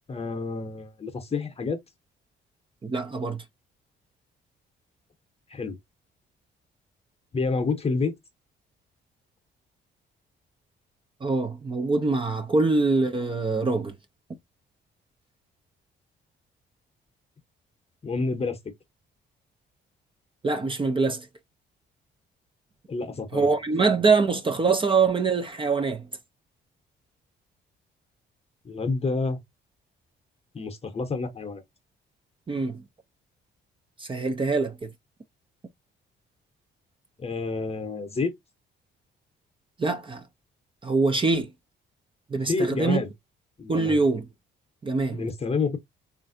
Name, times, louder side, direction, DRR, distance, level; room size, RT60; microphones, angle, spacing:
voice 1, 0.1-1.8 5.5-5.8 7.3-8.1 18.0-18.6 22.9-23.5 28.6-29.4 30.5-31.6 37.2-38.3 42.5-43.1 43.6-44.0 45.1-45.8, left 4 dB, 30° left, 0.8 m, -28 dB
voice 2, 2.8-3.4 11.2-13.9 20.4-21.3 23.3-26.1 32.5-32.8 34.0-34.9 39.8-40.2 40.8-41.5 42.3-43.0 43.7-44.2 44.8-45.2, right 4 dB, 25° right, 0.5 m, -24 dB
3.2 x 2.5 x 2.5 m
cardioid pair, 90°, 20 cm